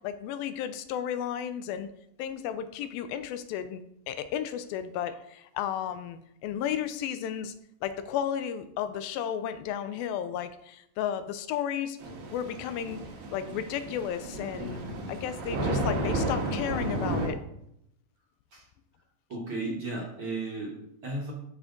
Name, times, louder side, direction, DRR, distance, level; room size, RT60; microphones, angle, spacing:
voice 1, 0.0-1.9 2.2-7.5 7.8-12.0 12.3-13.0 13.3-14.8 15.1-17.4, left 9 dB, 90° left, 11 dB, 2.5 m, -33 dB
Thunder / Rain, 12.0-17.3, right 1 dB, 85° right, 3.3 m, -32 dB
voice 2, 19.3-21.3, right 2 dB, 50° right, -2 dB, 1.8 m, -35 dB
12.5 x 5.1 x 3.8 m, 0.76 s
omnidirectional pair, 4.1 m